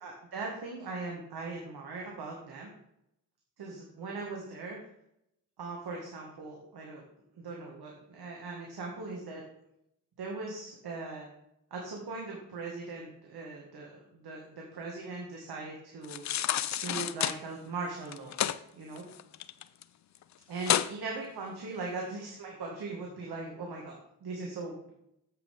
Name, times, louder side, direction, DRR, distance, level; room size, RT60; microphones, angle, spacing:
voice 1, 0.0-2.7 3.6-4.8 5.6-7.0 7.4-9.4 10.2-11.3 11.7-16.2 16.8-18.4 18.7-19.0 20.5-24.8, right 3 dB, 55° right, -1 dB, 1.9 m, -40 dB
sound 1, 16.0-17.4 18.1-18.6 19.0-19.8 20.1-20.2 20.6-20.9 21.4-21.5, left 11 dB, 40° left, 0.5 m, -30 dB
9.2 x 7.9 x 3.6 m, 0.79 s
hypercardioid pair, 40°, 44 cm